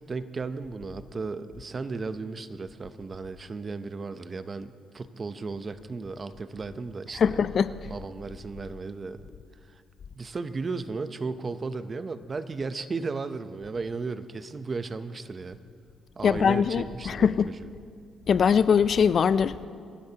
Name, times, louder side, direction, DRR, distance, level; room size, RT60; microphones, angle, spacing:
voice 1, 0.1-7.4 7.8-9.3 9.6-9.8 10.1-15.6 16.2-17.7, right 4 dB, 35° right, 0.7 m, -35 dB
voice 2, 7.2-7.7 16.2-17.5 18.3-19.7, left 7 dB, 55° left, 0.4 m, -22 dB
23.5 x 15.5 x 2.9 m
cardioid pair, 90°, 0 cm